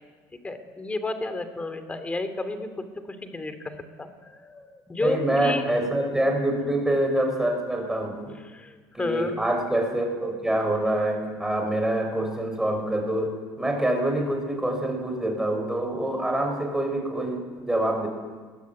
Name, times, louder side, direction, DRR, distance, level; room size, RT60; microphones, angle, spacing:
voice 1, 0.4-3.7 4.0-5.6 8.4-9.4, left 2 dB, 15° left, 9 dB, 2.9 m, -32 dB
voice 2, 5.0-8.3 8.9-18.1, right 1 dB, 5° right, 2 dB, 6.3 m, -26 dB
24.0 x 22.0 x 9.6 m, 1.5 s
cardioid pair, 125°, 8 cm